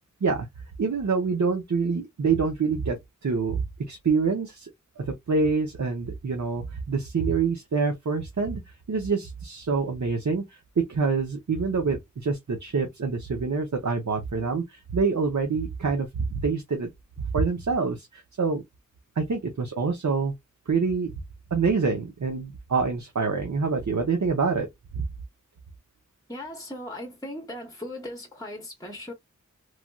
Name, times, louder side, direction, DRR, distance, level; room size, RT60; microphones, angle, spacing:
voice 1, 0.8-3.0 3.2-4.7 5.0-10.6 10.9-16.9 17.2-18.6 19.2-20.3 20.7-21.1 21.5-24.7 25.0-25.1, right 4 dB, 70° right, 0.7 m, -26 dB
voice 2, 26.3-29.1, left 1 dB, 10° left, 0.7 m, -38 dB
3.1 x 2.5 x 2.2 m
wide cardioid pair, 50°, 30 cm